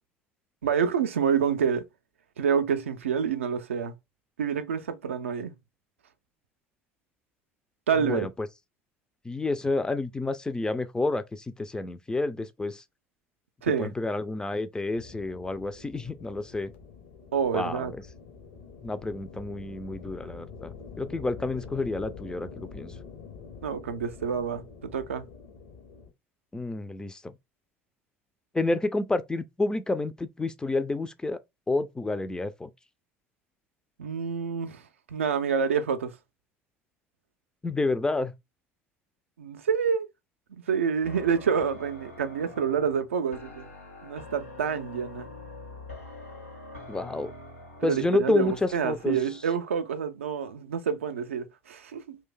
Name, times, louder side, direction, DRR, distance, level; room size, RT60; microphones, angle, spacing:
voice 1, 0.6-1.8 2.4-3.9 4.4-5.5 7.9-8.3 13.6-13.9 17.3-17.9 23.6-25.3 34.0-34.8 35.1-36.1 39.4-40.1 40.5-43.7 44.0-45.3 47.8-52.2, right 7 dB, 75° right, 0.4 m, -28 dB
voice 2, 8.0-8.5 9.3-12.8 13.8-16.7 17.5-17.9 18.8-22.9 26.5-27.2 28.5-31.4 31.7-32.7 37.6-38.3 46.9-47.3 47.8-49.2, left 2 dB, 10° left, 0.3 m, -29 dB
sound 1, 15.0-26.1, left 5 dB, 65° left, 0.7 m, -46 dB
sound 2, 41.0-49.5, left 2 dB, 90° left, 1.1 m, -45 dB
2.5 x 2.2 x 3.6 m
figure-of-eight pair, 65°, 7 cm